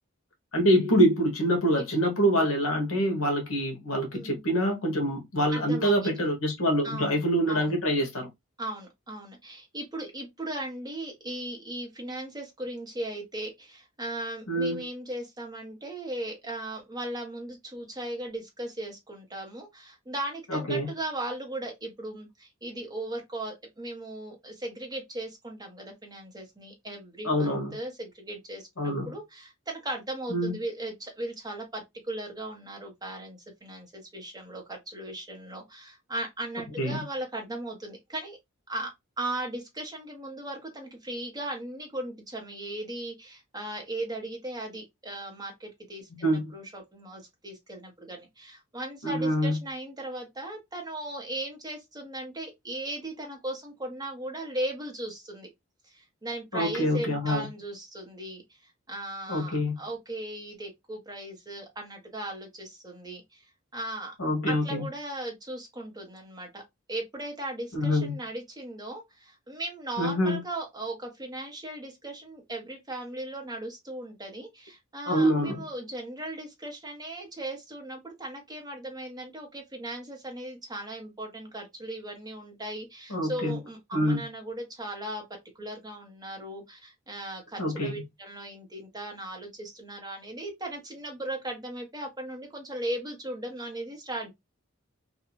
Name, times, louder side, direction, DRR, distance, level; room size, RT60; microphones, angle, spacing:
voice 1, 0.5-8.3 14.5-14.8 20.5-20.9 27.2-27.8 28.8-29.1 30.3-30.5 36.8-37.0 46.1-46.5 49.0-49.6 56.5-57.5 59.3-59.8 64.2-64.8 67.7-68.1 70.0-70.4 75.1-75.6 83.1-83.6 83.9-84.2 87.6-88.0, equal, 70° left, 0.8 m, -25 dB
voice 2, 5.5-6.1 6.8-7.2 7.5-7.7 8.6-38.4 38.7-55.5 55.8-63.5 63.7-64.1 64.5-66.6 66.9-85.2 85.6-94.3, right 1 dB, 15° right, 0.8 m, -37 dB
2.5 x 2.2 x 2.9 m
head